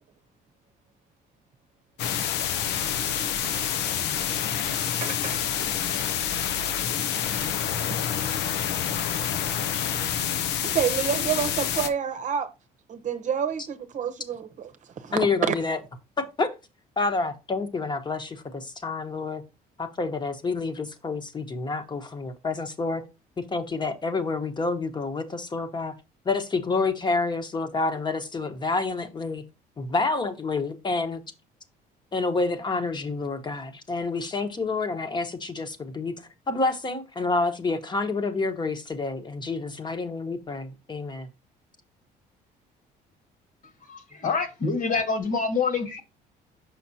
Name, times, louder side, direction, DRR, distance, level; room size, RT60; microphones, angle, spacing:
sound 1, 2.0-11.9, left 9 dB, 85° left, 0.7 m, -27 dB
voice 1, 5.0-5.4 7.2-8.0 9.4-9.8 10.1-10.2 10.6-12.5 12.9-15.2 15.5-15.6, right 8 dB, 45° right, 0.9 m, -30 dB
voice 2, 15.1-15.8 16.2-16.5 17.0-19.4 19.8-23.0 23.5-25.9 26.2-29.4 29.8-31.2 32.1-36.1 36.5-41.3, left 3 dB, 25° left, 1.2 m, -28 dB
voice 3, 43.9-46.0, left 4 dB, 50° left, 1.7 m, -26 dB
5.9 x 5.8 x 2.8 m
cardioid pair, 110°, 17 cm